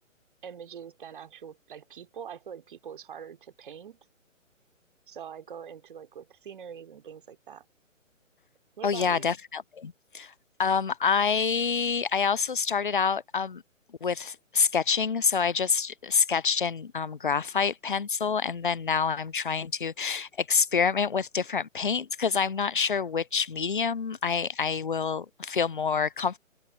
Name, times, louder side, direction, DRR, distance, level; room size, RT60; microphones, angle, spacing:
voice 1, 0.4-4.0 5.1-7.6 8.8-9.4, right 8 dB, 40° right, 3.0 m, -43 dB
voice 2, 8.8-10.3 10.6-13.6 14.0-26.4, left 6 dB, 40° left, 0.4 m, -27 dB
open air
figure-of-eight pair, 140°, 39 cm